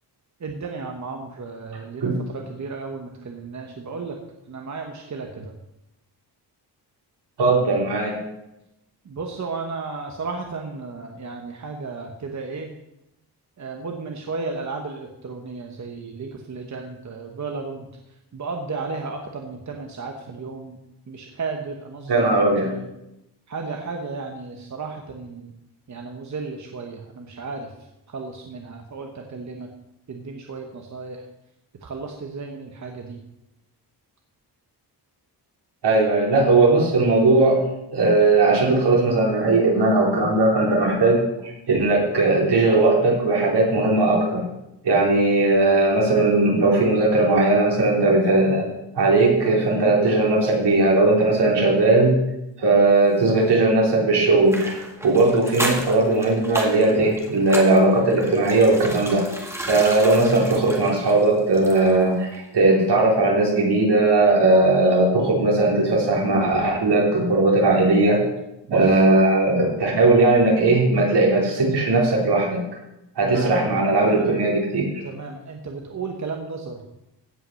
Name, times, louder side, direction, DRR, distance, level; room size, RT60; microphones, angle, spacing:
voice 1, 0.4-2.1 2.3-4.2 4.5-5.5 9.1-12.7 13.6-17.9 18.3-20.8 21.1-22.8 23.5-25.5 25.9-27.7 28.1-29.7 30.1-31.2 31.8-33.2 68.7-69.0 73.2-73.5 74.0-74.3 75.0-76.8, right 4 dB, 40° right, 2 dB, 1.1 m, -34 dB
voice 2, 7.4-8.1 22.1-22.7 35.8-37.6 37.9-44.4 44.8-48.6 48.9-52.2 52.6-59.2 59.7-68.2 68.7-72.6 73.2-74.9, right 2 dB, 70° right, -3 dB, 4.2 m, -18 dB
sound 1, 54.5-62.1 62.3-62.5, right 1 dB, 5° right, 1.9 m, -33 dB
16.0 x 5.8 x 6.4 m, 0.89 s
wide cardioid pair, 155°, 42 cm